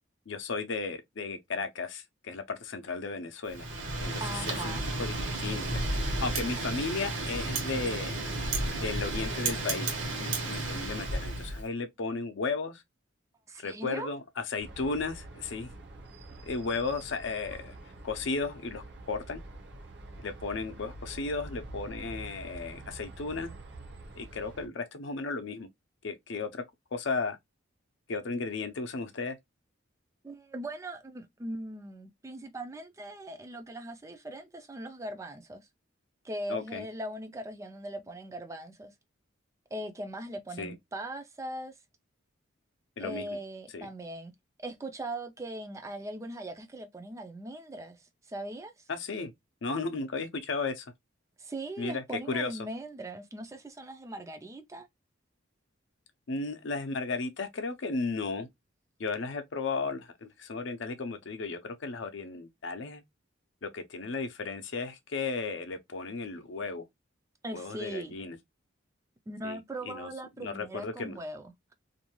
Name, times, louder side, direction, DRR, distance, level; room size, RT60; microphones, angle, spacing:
voice 1, 0.3-3.7 4.0-5.8 6.2-8.1 8.8-12.8 13.6-15.7 16.4-19.4 20.2-23.5 24.1-25.7 26.0-26.6 26.9-27.4 28.1-29.4 36.5-36.9 40.6-40.7 43.0-43.3 43.7-43.9 48.9-49.3 49.6-50.9 51.8-52.5 56.3-58.5 59.0-63.0 63.6-66.8 67.5-68.4 69.4-69.6 69.9-70.1 70.4-71.2, left 4 dB, 65° left, 0.5 m, -35 dB
Wind, 3.5-11.6, right 2 dB, 70° right, 1.0 m, -32 dB
voice 2, 4.2-4.9 13.5-14.1 30.2-35.7 36.2-38.9 39.7-41.8 43.0-44.3 44.6-48.9 51.4-54.9 67.4-68.1 69.3-71.7, right 1 dB, 15° right, 0.3 m, -40 dB
sound 1, 14.6-24.7, right 2 dB, 55° right, 0.7 m, -46 dB
2.5 x 2.3 x 2.9 m
head